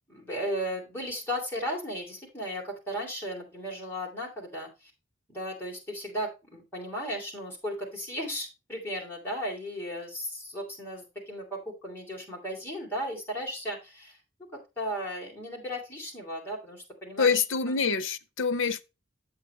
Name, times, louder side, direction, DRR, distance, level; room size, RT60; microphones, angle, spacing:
voice 1, 0.1-4.9 5.3-14.2 14.5-17.4, equal, 10° left, 2.9 m, -35 dB
voice 2, 17.2-18.8, left 5 dB, 75° left, 0.6 m, -26 dB
8.3 x 7.4 x 3.2 m
head